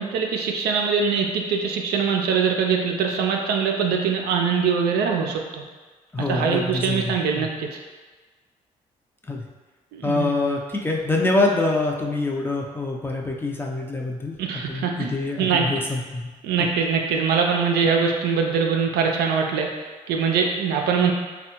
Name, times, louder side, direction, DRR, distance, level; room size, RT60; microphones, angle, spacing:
voice 1, 0.0-5.6 6.3-7.8 9.9-10.3 14.4-15.1 15.4-15.7 16.4-21.1, right 6 dB, 75° right, 2 dB, 0.4 m, -23 dB
voice 2, 6.1-7.5 9.3-9.4 10.0-14.3 14.7-16.3, left 2 dB, 15° left, -1 dB, 0.5 m, -25 dB
3.3 x 2.2 x 2.9 m, 1.3 s
supercardioid pair, 50°, 17 cm